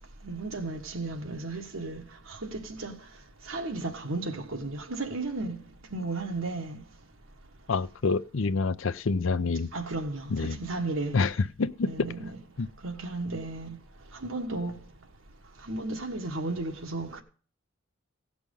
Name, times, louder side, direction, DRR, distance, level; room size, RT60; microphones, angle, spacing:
voice 1, 0.2-2.0 2.3-3.0 3.5-5.6 5.9-6.8 9.7-11.2 11.8-12.4 12.8-13.8 14.2-14.7 15.6-17.2, right 2 dB, 85° right, 1.5 m, -34 dB
voice 2, 7.7-9.7 10.3-10.6 11.1-12.1 12.6-12.7, left 4 dB, 75° left, 0.6 m, -27 dB
16.5 x 6.1 x 5.4 m
head